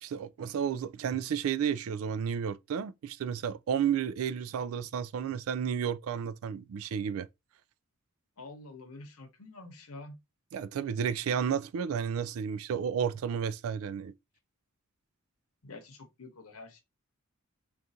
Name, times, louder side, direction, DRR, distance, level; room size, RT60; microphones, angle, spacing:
voice 1, 0.0-7.3 10.5-14.1, right 7 dB, 70° right, 0.3 m, -32 dB
voice 2, 8.4-10.1 15.6-16.8, left 2 dB, 85° left, 0.9 m, -47 dB
3.6 x 2.4 x 2.7 m
head